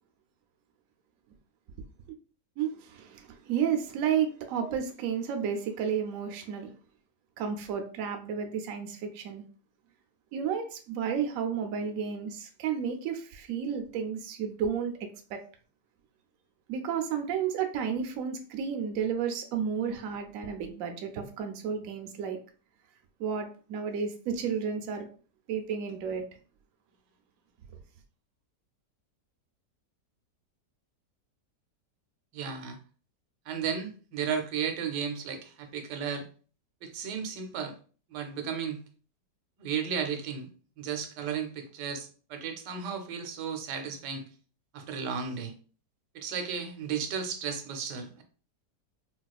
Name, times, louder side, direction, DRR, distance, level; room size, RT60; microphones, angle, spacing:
voice 1, 2.6-6.7 7.4-9.4 10.3-14.9 15.3-15.4 16.7-22.4 23.2-25.1 25.5-26.2 27.7-27.8, right 7 dB, 70° right, 0.8 m, -32 dB
voice 2, 32.3-32.8 33.5-36.3 36.8-37.7 38.1-38.8 39.6-40.5 40.8-44.3 44.7-45.5 46.1-48.2, right 7 dB, 85° right, 1.2 m, -34 dB
4.1 x 2.3 x 2.3 m
omnidirectional pair, 1.8 m